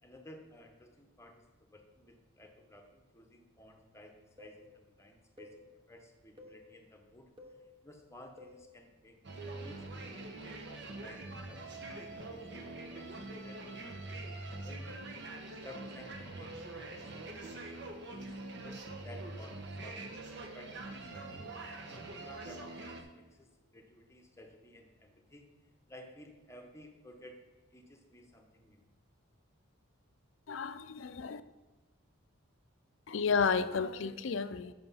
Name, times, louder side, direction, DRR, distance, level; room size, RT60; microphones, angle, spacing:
voice 1, 0.0-7.3 7.8-14.8 15.6-20.1 20.5-21.4 21.9-25.5 25.9-27.4 27.7-28.8, left 1 dB, 15° left, 3 dB, 0.9 m, -55 dB
sound 1, 4.4-4.6 5.4-5.6 6.4-6.6 7.4-7.6 8.4-8.6 9.4-9.7, right 2 dB, 25° right, 0.9 m, -50 dB
sound 2, 9.2-23.0, right 2 dB, 55° right, 1.0 m, -44 dB
voice 2, 30.5-31.4 33.1-34.7, left 5 dB, 65° left, 13 dB, 0.5 m, -32 dB
7.8 x 5.8 x 5.6 m, 1.3 s
head